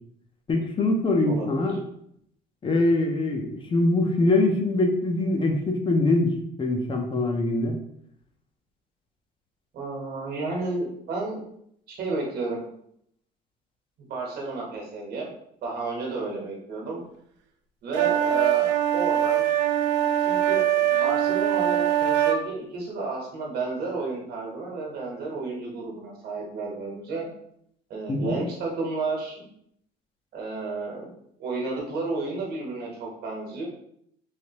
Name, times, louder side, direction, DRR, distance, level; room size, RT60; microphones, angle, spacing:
voice 1, 0.5-1.8 2.6-6.3 6.6-7.8 28.1-28.4, left 2 dB, 25° left, 3 dB, 0.6 m, -23 dB
voice 2, 1.3-1.8 9.7-11.4 11.9-12.6 14.0-15.3 15.6-17.0 17.8-19.5 20.2-27.3 27.9-29.5 30.3-31.1 31.4-33.7, right 3 dB, 60° right, -1 dB, 1.2 m, -32 dB
sound 1, 17.9-22.4, right 11 dB, 75° right, 0.5 m, -22 dB
3.2 x 2.6 x 2.9 m, 0.71 s
cardioid pair, 115°, 19 cm